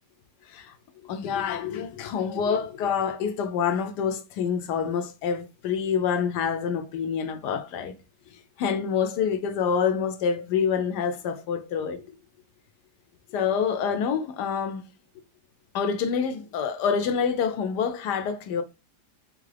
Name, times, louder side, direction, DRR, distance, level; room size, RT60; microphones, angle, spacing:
voice 1, 1.0-7.9 8.6-12.1 13.3-14.8 15.7-18.6, left 7 dB, 75° left, 1.2 m, -27 dB
3.7 x 3.6 x 3.3 m
omnidirectional pair, 1.9 m